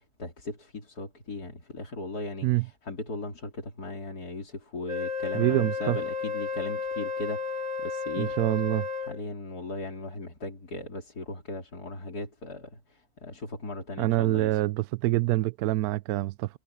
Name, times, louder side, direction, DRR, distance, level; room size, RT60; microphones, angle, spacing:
voice 1, 0.0-8.4 9.0-14.6, left 2 dB, 85° left, 4.0 m, -38 dB
Wind instrument woodwind instrument, 4.9-9.2, left 5 dB, 30° right, 4.2 m, -32 dB
voice 2, 5.3-6.0 8.2-8.8 14.0-16.6, right 16 dB, 80° right, 1.1 m, -26 dB
omnidirectional pair, 1.6 m